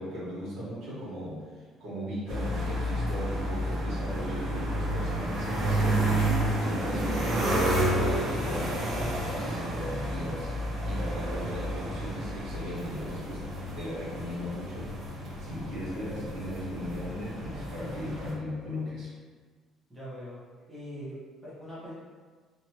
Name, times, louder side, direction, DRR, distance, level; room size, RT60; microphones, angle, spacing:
voice 1, 0.0-10.6 10.8-13.5 13.7-14.9 15.4-19.1, equal, 65° right, -8 dB, 1.2 m, -37 dB
sound 1, 2.3-18.3, right 1 dB, 50° right, 0.7 m, -30 dB
voice 2, 4.0-4.6 15.4-15.8 19.9-20.4 20.7-21.9, right 1 dB, 5° right, -10 dB, 0.9 m, -43 dB
2.9 x 2.3 x 3.0 m, 1.5 s
cardioid pair, 140°, 0 cm